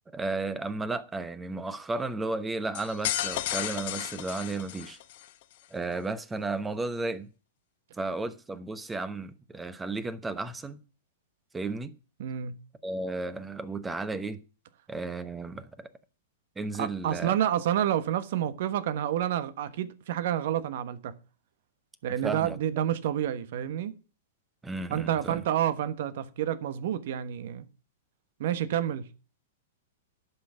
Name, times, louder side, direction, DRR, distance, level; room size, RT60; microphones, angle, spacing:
voice 1, 0.1-5.0 5.7-7.3 8.0-10.8 11.5-11.9 12.8-14.4 14.9-15.9 16.6-17.3 22.2-22.6 24.6-25.4, right 3 dB, 10° right, 1.0 m, -33 dB
sound 1, 2.7-5.3, left 13 dB, 55° left, 1.0 m, -33 dB
voice 2, 12.2-12.6 16.8-21.1 22.0-23.9 24.9-27.7 28.4-29.1, right 10 dB, 60° right, 1.2 m, -29 dB
11.5 x 5.8 x 7.4 m
hypercardioid pair, 115°, 0 cm